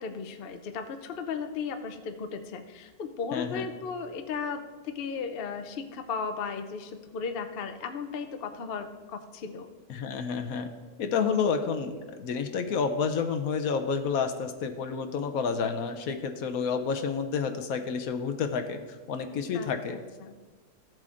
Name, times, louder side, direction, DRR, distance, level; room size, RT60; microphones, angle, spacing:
voice 1, 0.0-9.7 19.5-20.3, left 5 dB, 55° left, 7 dB, 0.7 m, -36 dB
voice 2, 3.3-3.7 9.9-10.7 11.0-18.8 19.1-20.0, left 5 dB, 75° left, 7 dB, 1.1 m, -29 dB
15.0 x 7.6 x 2.5 m, 1.3 s
omnidirectional pair, 1.6 m